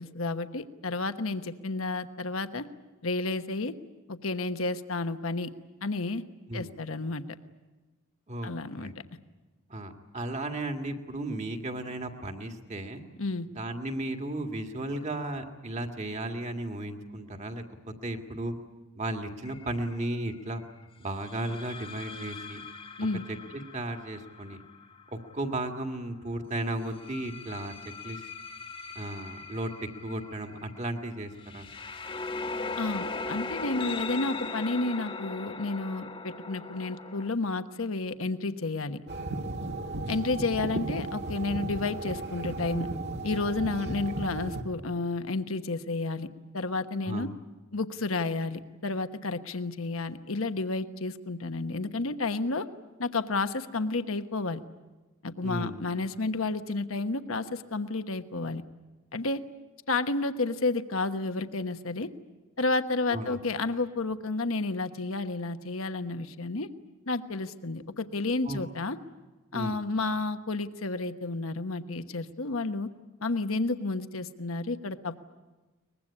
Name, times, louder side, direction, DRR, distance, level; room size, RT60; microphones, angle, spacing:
voice 1, 0.0-2.6 3.0-3.7 4.1-5.5 5.8-6.2 6.5-7.2 8.4-8.9 13.2-13.5 23.0-23.2 32.8-39.0 40.1-42.9 43.2-46.3 46.5-47.3 47.7-52.7 53.0-54.6 55.2-58.6 59.1-59.4 59.9-62.1 62.6-66.7 67.1-69.0 69.5-72.9 73.2-75.2, left 3 dB, 70° left, 9 dB, 1.2 m, -31 dB
voice 2, 9.7-13.0 13.6-18.6 19.0-20.6 21.0-22.6 23.5-24.6 25.1-27.7 28.0-28.3 29.0-29.7 30.0-31.7 47.1-47.3 55.4-55.8 63.1-63.4 68.5-68.6 69.5-69.8, right 1 dB, 35° right, 4 dB, 2.0 m, -35 dB
sound 1, 19.5-19.7 21.2-26.0 26.8-37.3, left 3 dB, 25° left, 1.5 m, -39 dB
sound 2, 39.1-44.6, right 2 dB, 55° right, 1.8 m, -35 dB
23.5 x 21.0 x 9.9 m, 1.2 s
head